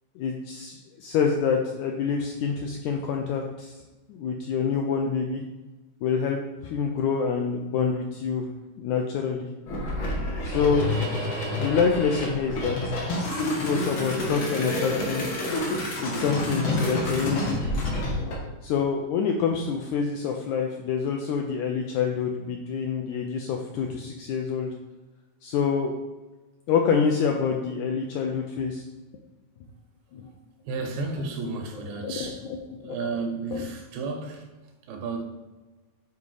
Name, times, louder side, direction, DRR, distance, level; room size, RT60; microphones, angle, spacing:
voice 1, 0.2-3.8 4.1-5.4 6.0-8.5 8.8-9.5 10.4-10.9 11.6-12.8 13.4-15.4 16.0-17.6 18.6-24.7 25.4-25.9 26.7-28.9 30.1-30.3 32.0-32.3 32.8-33.0 33.5-33.6, left 6 dB, 85° left, 1.7 m, -26 dB
sound 1, 9.7-18.4, left 1 dB, 55° left, 1.4 m, -28 dB
voice 2, 30.6-32.5 32.8-35.2, right 3 dB, 85° right, 2.7 m, -33 dB
7.2 x 4.1 x 4.8 m
omnidirectional pair, 3.9 m